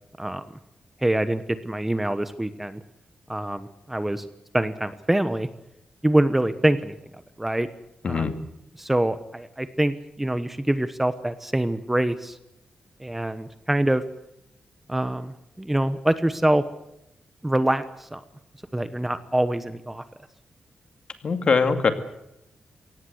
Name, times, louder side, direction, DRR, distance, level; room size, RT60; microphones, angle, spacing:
voice 1, 1.0-2.8 3.3-4.2 4.5-5.5 6.0-7.0 7.4-7.7 8.1-8.3 8.8-12.4 13.0-14.0 14.9-16.6 17.4-18.2 18.7-20.0, right 1 dB, 10° right, 12 dB, 1.0 m, -25 dB
voice 2, 8.0-8.4 21.2-21.9, left 5 dB, 45° left, 8 dB, 2.2 m, -21 dB
23.5 x 18.0 x 8.0 m, 0.82 s
wide cardioid pair, 150°, 2 cm